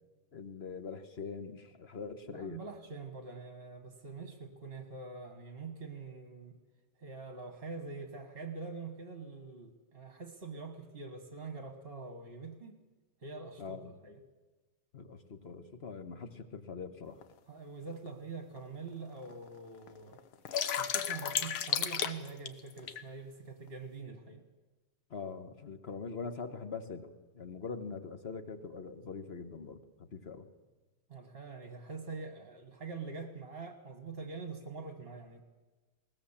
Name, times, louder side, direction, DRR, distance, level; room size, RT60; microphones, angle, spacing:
voice 1, 0.3-2.6 13.6-14.0 14.9-17.2 25.1-30.5, left 5 dB, 35° left, 9 dB, 1.3 m, -43 dB
voice 2, 2.3-6.6 7.0-12.8 13.2-14.2 17.5-20.2 20.8-24.4 31.1-35.4, right 4 dB, 30° right, 7 dB, 1.6 m, -45 dB
sound 1, 17.2-17.3 18.1-18.2 18.6-18.7 18.9-19.5 19.9-23.0, left 9 dB, 80° left, 1.9 m, -33 dB
21.0 x 19.0 x 7.3 m, 1.2 s
omnidirectional pair, 2.3 m